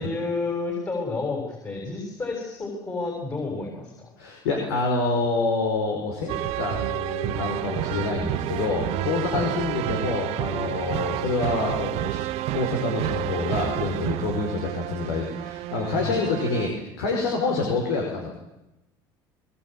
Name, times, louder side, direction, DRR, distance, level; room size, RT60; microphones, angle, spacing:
voice 1, 0.0-4.1 9.3-9.5 16.0-16.4, left 3 dB, 25° left, 1 dB, 6.9 m, -30 dB
voice 2, 4.2-12.2 12.5-18.3, left 3 dB, 80° left, 1 dB, 5.1 m, -27 dB
sound 1, 6.3-16.8, right 16 dB, 65° right, 0.9 m, -30 dB
22.5 x 21.0 x 9.0 m, 0.95 s
hypercardioid pair, 80°, 11 cm